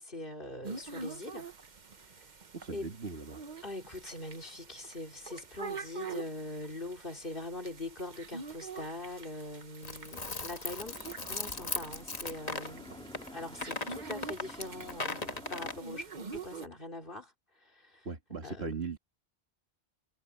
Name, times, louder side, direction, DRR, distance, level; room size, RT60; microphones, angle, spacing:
voice 1, 0.0-1.5 2.7-2.9 3.6-11.0 11.3-16.1 16.3-17.3 17.6-18.1 18.4-18.7, left 2 dB, 55° left, 3.7 m, -42 dB
sound 1, 0.6-16.7, right 4 dB, 50° right, 1.2 m, -46 dB
voice 2, 2.5-3.4 18.1-19.0, right 4 dB, 80° right, 2.2 m, -39 dB
sound 2, 9.8-12.7 13.1-13.3 13.6-15.8, left 3 dB, 40° left, 1.5 m, -37 dB
sound 3, 10.8-15.8, equal, 5° left, 3.2 m, -51 dB
omnidirectional pair, 1.0 m